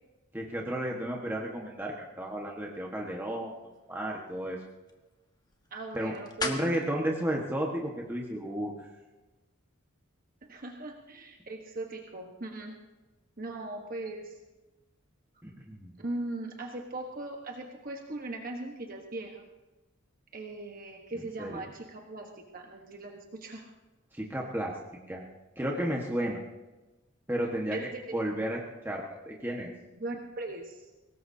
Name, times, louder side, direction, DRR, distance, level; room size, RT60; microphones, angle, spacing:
voice 1, 0.3-3.5 3.9-4.6 5.9-6.1 6.4-8.9 15.4-15.9 21.4-21.6 24.1-24.7 25.1-25.2 25.6-26.4 27.3-28.6 28.8-29.7, right 1 dB, 10° right, -2 dB, 1.5 m, -33 dB
sound 1, 3.4-8.6, left 3 dB, 20° left, 1.4 m, -43 dB
voice 2, 5.7-6.7 10.5-12.7 13.4-14.4 16.0-19.4 20.3-23.7 27.7-28.2 30.0-30.9, right 2 dB, 45° right, 2 dB, 1.3 m, -39 dB
23.0 x 19.0 x 2.8 m, 1.1 s
head